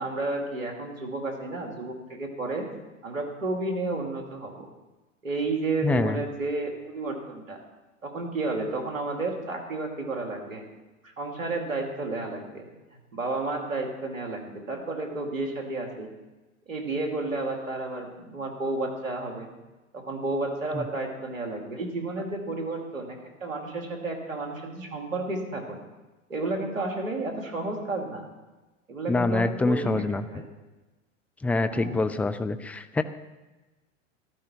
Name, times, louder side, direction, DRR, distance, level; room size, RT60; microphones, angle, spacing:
voice 1, 0.0-2.7 3.0-4.7 5.2-7.6 8.0-10.7 11.2-12.6 13.1-16.1 16.7-19.5 19.9-25.8 26.3-28.3 28.9-30.4 31.7-32.0, right 2 dB, 85° right, 2 dB, 2.9 m, -31 dB
voice 2, 5.8-6.2 20.7-20.9 29.1-30.2 31.4-33.0, left 3 dB, 5° left, 10 dB, 0.4 m, -25 dB
14.0 x 13.0 x 4.6 m, 1.1 s
hypercardioid pair, 100°, 39 cm